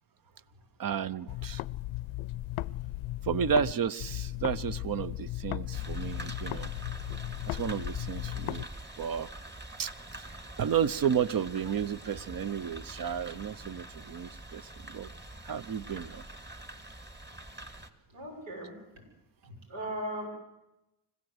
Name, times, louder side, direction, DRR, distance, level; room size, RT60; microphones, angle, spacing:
voice 1, 0.8-1.6 3.2-6.7 7.5-8.7 9.0-9.3 9.8-9.9 10.2-15.1 15.4-16.3, right 8 dB, 45° right, 16 dB, 0.8 m, -32 dB
sound 1, 1.3-3.7 4.0-8.6, left 16 dB, 75° left, 0.7 m, -36 dB
sound 2, 5.7-17.9, right 1 dB, 20° right, 2.0 m, -45 dB
voice 2, 18.1-18.8 19.4-20.3, equal, 80° right, 1 dB, 6.3 m, -38 dB
25.0 x 15.5 x 7.9 m, 0.94 s
supercardioid pair, 70°, 50 cm